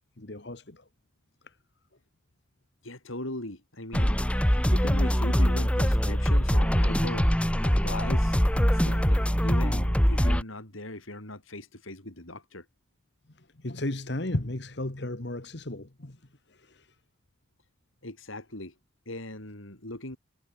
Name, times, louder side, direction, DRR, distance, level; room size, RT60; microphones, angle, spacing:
voice 1, 0.2-0.9 1.4-1.6 13.4-16.2 16.5-16.9, left 1 dB, 55° left, 1.7 m, -35 dB
voice 2, 2.8-4.2 4.6-7.3 7.6-12.7 18.0-18.7 19.1-20.2, left 1 dB, 85° left, 6.3 m, -39 dB
sound 1, 3.9-10.4, equal, 5° left, 1.4 m, -23 dB
head